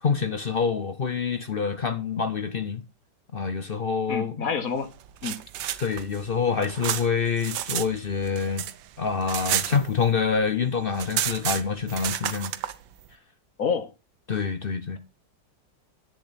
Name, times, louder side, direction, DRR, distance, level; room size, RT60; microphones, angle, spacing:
voice 1, 0.0-2.8 3.3-4.4 5.8-8.6 9.0-12.5 14.3-15.0, left 5 dB, 70° left, 0.5 m, -26 dB
voice 2, 4.1-4.9 5.2-5.4 13.6-13.9, left 6 dB, 50° left, 1.6 m, -27 dB
sound 1, 5.0-7.9 8.2-10.3 10.6-10.7 10.9-12.7, right 12 dB, 80° right, 1.5 m, -30 dB
10.5 x 8.7 x 4.2 m
omnidirectional pair, 2.0 m